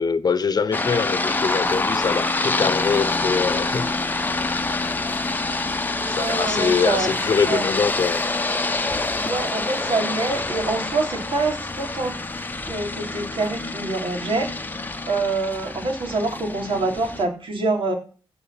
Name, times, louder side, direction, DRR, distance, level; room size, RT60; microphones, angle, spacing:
voice 1, 0.0-4.2 6.1-8.2, left 5 dB, 40° left, 1.1 m, -23 dB
sound 1, 0.7-17.3, left 3 dB, 20° left, 1.0 m, -26 dB
voice 2, 6.0-7.1 7.5-7.6 9.2-12.2 12.7-14.5 15.1-17.9, right 3 dB, 60° right, 3.8 m, -25 dB
14.5 x 5.1 x 8.7 m
cardioid pair, 95°, 10 cm